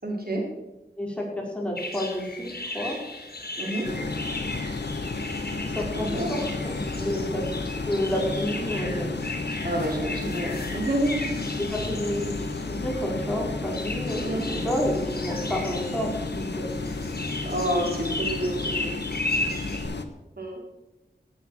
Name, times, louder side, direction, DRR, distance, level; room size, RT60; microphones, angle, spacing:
voice 1, 0.0-0.4 3.6-3.9 5.9-6.3 7.0-7.3 9.6-11.3 14.2-14.4 17.4-18.5 18.8-18.9 20.4-20.6, right 1 dB, 60° right, -1 dB, 4.7 m, -28 dB
voice 2, 1.0-3.0 3.6-4.0 5.7-6.8 7.0-7.4 7.8-9.1 11.6-16.7, equal, 5° left, -2 dB, 5.0 m, -30 dB
sound 1, 1.8-19.8, left 2 dB, 60° left, 3.5 m, -36 dB
sound 2, 3.8-20.1, left 3 dB, 80° left, 1.2 m, -32 dB
17.0 x 8.7 x 6.5 m, 0.99 s
wide cardioid pair, 55°, 18 cm